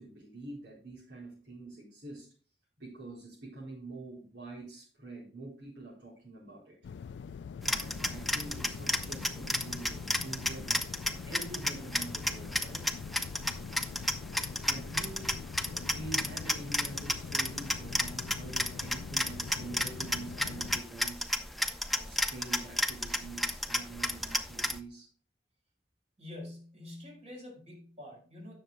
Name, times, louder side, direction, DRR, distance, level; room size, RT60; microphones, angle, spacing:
voice 1, 0.0-2.3 2.8-6.8 7.1-7.2 7.7-10.8 11.2-12.8 14.6-15.3 15.7-21.6 21.9-25.1, right 2 dB, 85° right, -9 dB, 4.2 m, -45 dB
sound 1, 6.8-20.8, left 6 dB, 85° left, 0.3 m, -44 dB
sound 2, 7.6-24.8, left 1 dB, ahead, 0.7 m, -33 dB
voice 2, 26.2-28.6, left 1 dB, 40° right, 0 dB, 4.8 m, -46 dB
17.0 x 6.5 x 2.2 m, 0.40 s
head